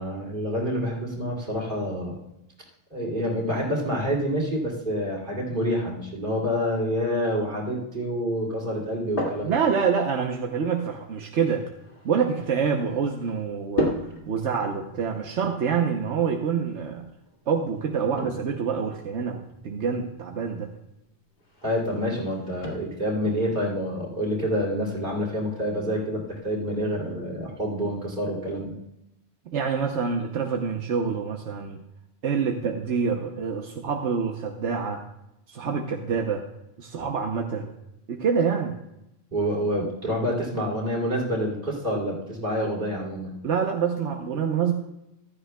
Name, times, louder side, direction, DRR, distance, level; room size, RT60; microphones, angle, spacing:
voice 1, 0.0-2.2 2.9-9.6 21.6-28.7 39.3-43.4, equal, 45° right, -3 dB, 3.0 m, -27 dB
sound 1, 8.7-26.8, left 1 dB, 50° left, 2.3 m, -38 dB
voice 2, 9.4-11.7 12.0-13.9 14.3-17.0 17.5-20.7 29.5-31.8 32.2-35.0 35.5-36.4 36.8-37.7 38.1-38.8 43.4-44.7, right 6 dB, 80° right, 3 dB, 1.2 m, -26 dB
14.5 x 12.5 x 2.2 m, 0.87 s
omnidirectional pair, 1.2 m